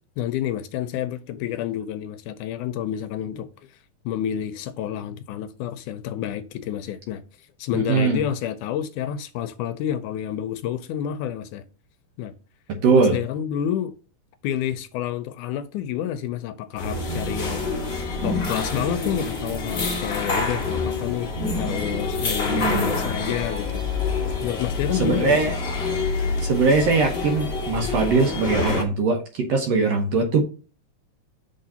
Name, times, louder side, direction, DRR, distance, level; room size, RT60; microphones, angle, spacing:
voice 1, 0.2-3.5 4.1-7.2 7.6-11.6 12.2-12.3 12.9-13.9 14.4-17.7 18.2-23.8 24.4-25.4, left 10 dB, 80° left, 2.0 m, -29 dB
voice 2, 7.9-8.2 12.7-13.2 22.5-23.0 25.0-25.5 26.4-30.4, right 4 dB, 65° right, 1.8 m, -21 dB
sound 1, 16.8-28.8, left 4 dB, 55° left, 0.7 m, -27 dB
sound 2, 16.8-23.7, right 1 dB, 20° right, 1.8 m, -36 dB
6.2 x 3.8 x 5.6 m
omnidirectional pair, 3.8 m